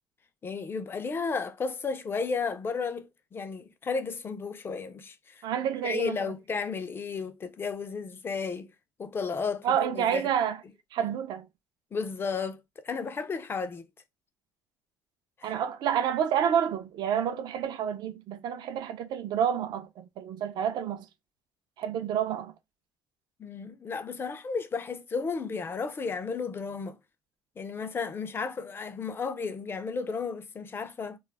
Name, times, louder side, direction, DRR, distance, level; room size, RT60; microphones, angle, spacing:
voice 1, 0.4-5.4 5.8-8.7 9.0-10.2 11.9-13.9 15.4-15.5 23.4-27.0 27.6-31.2, left 5 dB, 25° left, 0.4 m, -33 dB
voice 2, 5.4-6.4 9.6-10.6 10.9-11.5 15.4-21.1 21.8-22.5, right 9 dB, 60° right, 0.4 m, -29 dB
2.2 x 2.0 x 3.2 m
cardioid pair, 100°, 8 cm